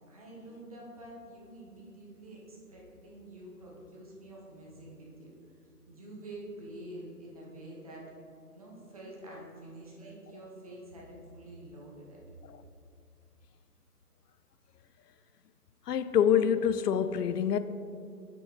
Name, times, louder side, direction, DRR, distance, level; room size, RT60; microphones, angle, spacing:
voice 1, 0.1-5.3 5.9-8.0 8.5-12.2, right 1 dB, 25° right, -4 dB, 0.9 m, -47 dB
voice 2, 15.9-17.6, left 8 dB, 80° left, 13 dB, 0.5 m, -26 dB
7.0 x 6.1 x 3.7 m, 2.4 s
hypercardioid pair, 165°, 47 cm